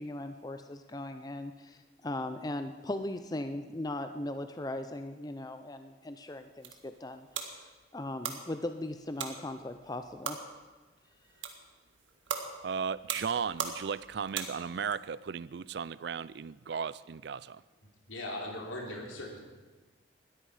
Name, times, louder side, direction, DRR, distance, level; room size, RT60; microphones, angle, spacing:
voice 1, 0.0-7.3 7.5-7.6 7.9-10.4, left 1 dB, 20° left, 8 dB, 0.5 m, -38 dB
sound 1, 6.3-15.0, right 6 dB, 80° right, 1.7 m, -41 dB
voice 2, 12.6-17.6, right 6 dB, 55° right, 19 dB, 0.4 m, -35 dB
voice 3, 18.1-19.4, left 1 dB, 80° left, 0 dB, 3.3 m, -39 dB
20.0 x 13.5 x 4.9 m, 1.3 s
head